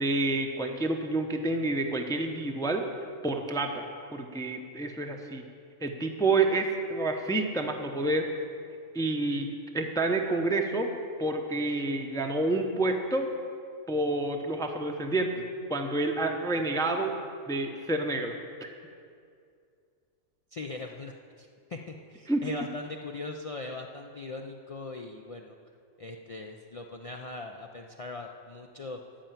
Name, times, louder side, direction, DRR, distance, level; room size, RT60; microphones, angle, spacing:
voice 1, 0.0-2.9 3.2-3.9 4.1-5.4 5.8-8.3 8.9-10.9 11.2-13.3 13.9-15.4 15.7-17.1 17.5-18.7 22.3-22.5, right 2 dB, 5° left, 3 dB, 0.5 m, -29 dB
voice 2, 20.5-25.6 26.0-29.0, left 3 dB, 60° left, 2 dB, 0.3 m, -40 dB
13.5 x 5.7 x 9.1 m, 2.3 s
omnidirectional pair, 1.4 m